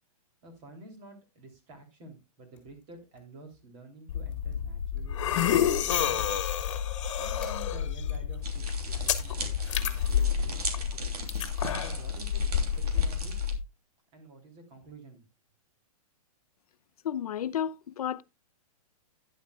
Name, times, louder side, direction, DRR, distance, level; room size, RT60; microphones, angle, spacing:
voice 1, 0.4-6.2 7.2-11.2 11.7-13.4 14.1-15.2, right 2 dB, 25° right, 3.3 m, -50 dB
sound 1, 2.5-2.8 3.1-3.7 4.3-4.6 5.0-5.2 5.7-6.8 7.4-8.4, left 5 dB, 5° left, 3.4 m, -55 dB
sound 2, 4.1-13.6, left 9 dB, 50° left, 1.6 m, -29 dB
sound 3, 8.4-13.5, right 4 dB, 85° right, 3.3 m, -40 dB
voice 2, 17.0-18.2, left 9 dB, 75° left, 0.8 m, -32 dB
11.5 x 10.5 x 2.4 m
hypercardioid pair, 175°, 19 cm